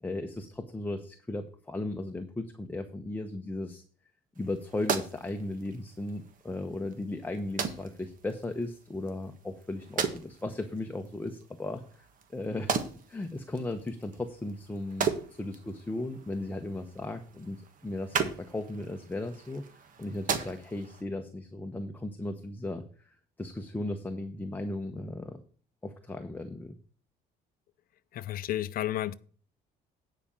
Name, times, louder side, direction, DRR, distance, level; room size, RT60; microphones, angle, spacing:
voice 1, 0.0-3.8 4.4-11.8 12.3-15.1 15.4-19.6 20.0-25.4 25.8-26.8, left 2 dB, 10° left, 0.9 m, -36 dB
sound 1, 4.3-21.0, right 6 dB, 50° right, 1.5 m, -38 dB
voice 2, 28.1-29.1, left 13 dB, 60° left, 0.6 m, -32 dB
9.7 x 5.0 x 7.1 m
cardioid pair, 110°, 17 cm